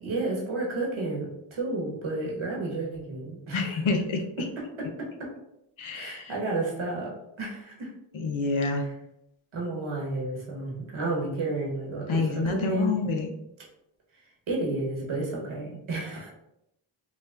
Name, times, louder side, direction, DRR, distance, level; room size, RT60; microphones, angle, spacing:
voice 1, 0.0-3.7 4.4-4.5 4.8-5.3 5.9-7.1 7.4-7.9 8.7-8.9 9.5-13.0 14.5-16.3, right 2 dB, 80° right, -3 dB, 1.3 m, -31 dB
voice 2, 3.5-4.2 5.8-6.3 8.1-8.8 12.1-13.3, left 3 dB, 80° left, 4 dB, 0.7 m, -27 dB
5.8 x 2.2 x 2.4 m, 0.83 s
cardioid pair, 45°, 48 cm